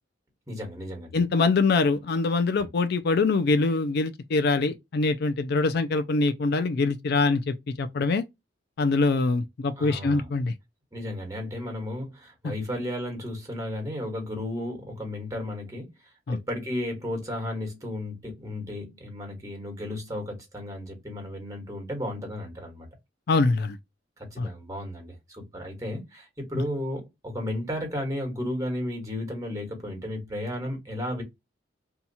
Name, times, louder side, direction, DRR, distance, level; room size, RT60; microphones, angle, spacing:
voice 1, 0.5-1.2 9.8-10.3 10.9-15.9 16.3-22.9 24.2-31.2, left 1 dB, 20° right, 1.4 m, -34 dB
voice 2, 1.1-8.2 8.8-10.5 16.3-16.4 23.3-23.8 24.4-24.5, left 3 dB, 60° left, 0.4 m, -24 dB
2.8 x 2.3 x 4.0 m
head